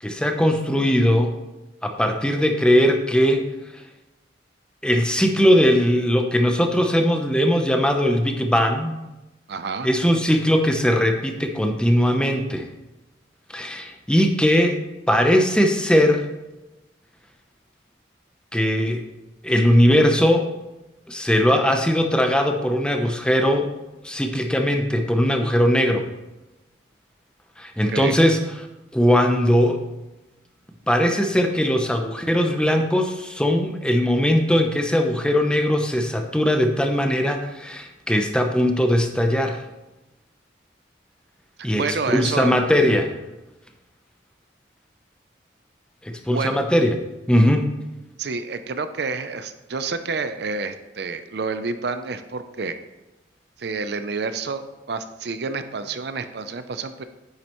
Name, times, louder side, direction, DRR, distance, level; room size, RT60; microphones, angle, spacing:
voice 1, 0.0-1.4 1.8-3.4 4.8-8.9 9.8-12.7 13.5-14.8 15.1-16.2 18.5-19.0 19.4-20.5 21.1-23.7 24.0-26.0 27.6-28.4 28.9-29.8 30.9-39.6 41.6-43.1 46.0-47.0 47.3-47.7, equal, 5° left, 4 dB, 0.6 m, -19 dB
voice 2, 9.5-9.9 27.9-28.1 41.7-42.6 46.3-46.6 48.2-52.8 53.6-57.0, right 4 dB, 60° right, 10 dB, 0.5 m, -29 dB
9.6 x 7.7 x 3.0 m, 1.0 s
head